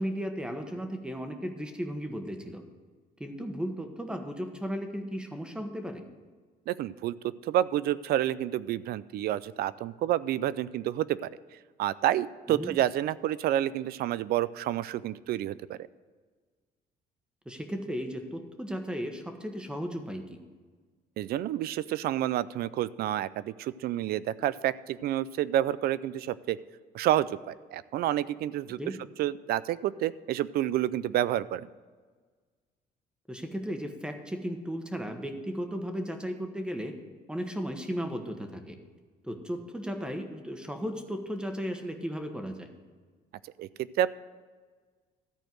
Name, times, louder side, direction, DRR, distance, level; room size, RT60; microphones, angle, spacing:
voice 1, 0.0-2.6 3.2-6.0 12.5-12.7 17.4-20.4 28.8-29.0 33.3-36.9 37.3-38.8 39.2-42.7, equal, 5° right, 5 dB, 1.2 m, -35 dB
voice 2, 6.7-7.2 7.4-11.3 11.8-15.8 21.2-26.6 26.9-28.8 29.2-31.7 43.6-44.2, right 12 dB, 65° right, 18 dB, 0.4 m, -29 dB
13.5 x 4.4 x 7.7 m, 1.5 s
cardioid pair, 110°, 17 cm